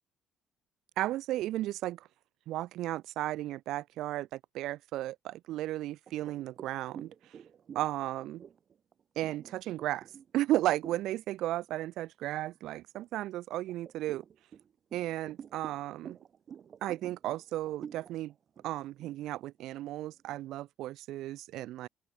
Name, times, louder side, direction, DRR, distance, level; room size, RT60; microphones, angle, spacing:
voice 1, 1.0-2.1 2.5-7.1 7.7-8.4 9.2-10.1 10.3-14.2 14.9-16.2 16.8-18.3 18.6-21.9, right 15 dB, 80° right, 0.3 m, -34 dB
sound 1, 6.1-11.2 11.6-11.9 12.3-13.1 13.7-20.4, right 8 dB, 40° right, 0.8 m, -50 dB
open air
cardioid pair, 145°, 0 cm